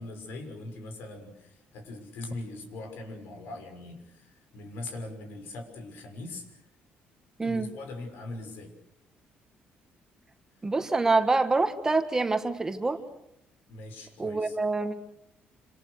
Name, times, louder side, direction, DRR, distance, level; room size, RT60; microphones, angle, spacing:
voice 1, 0.0-6.6 7.4-8.7 13.7-14.6, left 2 dB, 80° left, 6 dB, 6.2 m, -41 dB
voice 2, 7.4-7.7 10.6-13.0 14.2-15.0, right 3 dB, 15° right, 8 dB, 1.7 m, -26 dB
27.5 x 26.5 x 6.7 m, 0.78 s
cardioid pair, 140°, 4 cm